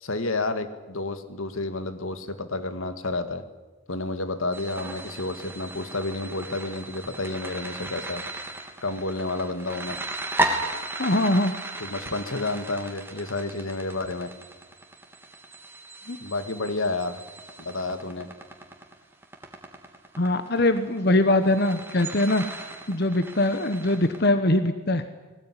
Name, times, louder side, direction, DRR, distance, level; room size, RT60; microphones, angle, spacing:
voice 1, 0.0-3.4 3.9-8.2 8.8-10.0 11.8-14.3 16.2-17.2 17.6-18.3, left 2 dB, 85° left, 9 dB, 2.0 m, -30 dB
sound 1, 4.5-24.3, right 2 dB, 10° right, 2.9 m, -36 dB
voice 2, 10.9-11.5 16.1-16.2 20.2-22.4 22.9-25.0, left 1 dB, 50° left, 10 dB, 1.2 m, -22 dB
20.0 x 19.0 x 10.0 m, 1.2 s
head